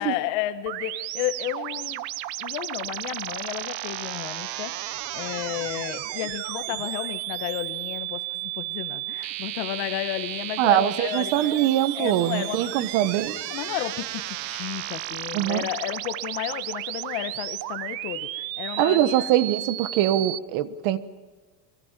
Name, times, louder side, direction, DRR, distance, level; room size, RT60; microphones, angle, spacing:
voice 1, 0.0-2.0 2.4-11.7 11.9-12.9 13.5-19.1, left 14 dB, 60° left, 9 dB, 1.5 m, -32 dB
sound 1, 0.7-20.4, right 16 dB, 90° right, 1.2 m, -33 dB
voice 2, 10.6-13.4 15.3-15.6 18.8-21.0, right 12 dB, 55° right, 13 dB, 1.4 m, -23 dB
23.5 x 23.5 x 7.6 m, 1.4 s
supercardioid pair, 135°, 50 cm